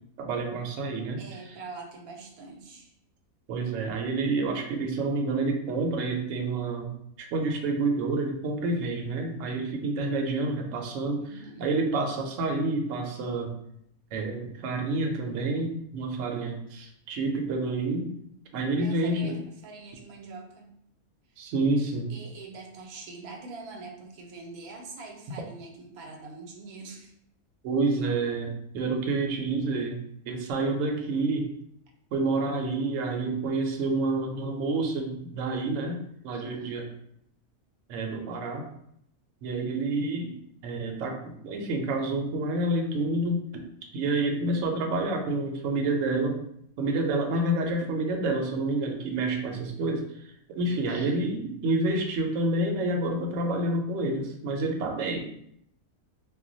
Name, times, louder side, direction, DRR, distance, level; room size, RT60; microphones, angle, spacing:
voice 1, 0.2-1.2 3.5-11.2 11.6-13.6 14.1-18.1 18.5-19.4 21.4-22.1 27.6-30.0 30.3-31.5 32.1-36.8 37.9-38.7 39.4-40.4 40.6-43.6 43.9-46.4 46.8-50.0 50.5-55.2, right 2 dB, 70° right, 2 dB, 0.8 m, -28 dB
voice 2, 1.2-2.9 11.2-11.7 18.8-20.7 21.3-21.5 22.1-27.1 36.3-36.8 50.9-51.3, right 3 dB, 90° right, 2 dB, 1.1 m, -44 dB
2.3 x 2.1 x 3.8 m, 0.72 s
omnidirectional pair, 1.5 m